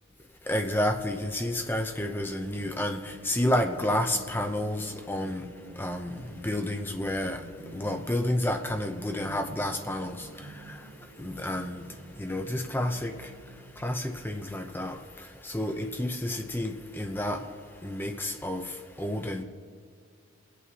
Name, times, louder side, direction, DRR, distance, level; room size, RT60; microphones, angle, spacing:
voice 1, 0.5-3.0 3.3-5.4 5.8-6.1 6.4-7.4 7.7-10.2 11.2-11.8 12.2-13.1 13.8-15.0 15.5-17.4 17.8-18.6 19.0-19.4, left 1 dB, 10° left, 0.6 m, -30 dB
sound 1, 2.4-15.1, right 1 dB, 80° right, 1.0 m, -49 dB
24.5 x 8.4 x 2.8 m
head